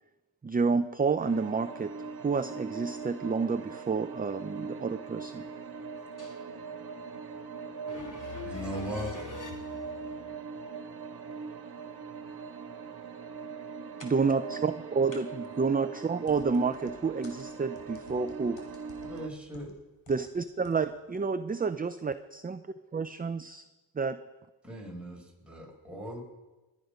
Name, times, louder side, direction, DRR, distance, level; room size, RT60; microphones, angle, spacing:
voice 1, 0.4-1.9 2.2-5.5 14.0-18.6 20.1-22.6 22.9-23.6 24.0-24.2, right 4 dB, 20° right, 11 dB, 0.6 m, -29 dB
sound 1, 1.2-19.3, right 5 dB, 55° right, 1.7 m, -41 dB
voice 2, 7.9-10.2 14.0-14.1, left 5 dB, 40° left, 1 dB, 3.0 m, -43 dB
voice 3, 8.4-9.2 19.0-19.7 24.6-26.2, equal, ahead, -2 dB, 6.3 m, -39 dB
sound 2, 16.3-20.3 20.6-20.9 21.2-21.3, left 5 dB, 75° left, 3.8 m, -55 dB
21.0 x 9.7 x 5.2 m, 1.1 s
cardioid pair, 65°, 46 cm